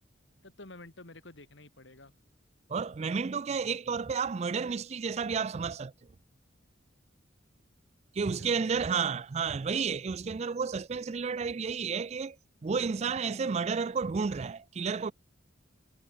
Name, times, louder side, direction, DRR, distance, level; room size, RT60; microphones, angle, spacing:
voice 1, 0.4-2.1 8.2-9.1, left 2 dB, 70° left, 2.7 m, -51 dB
voice 2, 2.7-5.9 8.1-12.4 12.6-15.1, right 5 dB, 35° right, 0.4 m, -31 dB
head